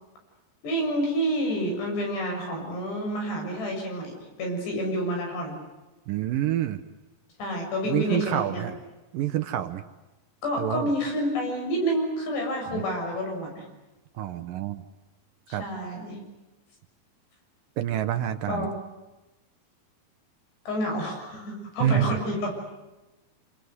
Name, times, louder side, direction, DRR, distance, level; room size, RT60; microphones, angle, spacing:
voice 1, 0.6-4.1 4.4-5.6 7.4-8.7 10.4-13.7 15.5-16.2 18.5-18.8 20.7-22.6, equal, 85° left, 2 dB, 8.8 m, -29 dB
voice 2, 6.1-6.8 7.9-8.8 9.1-9.8 10.6-10.9 12.7-12.8 14.2-14.8 15.5-15.6 17.8-18.7 21.8-22.1, right 11 dB, 70° right, 9 dB, 2.4 m, -27 dB
27.0 x 27.0 x 8.0 m, 1.1 s
omnidirectional pair, 4.7 m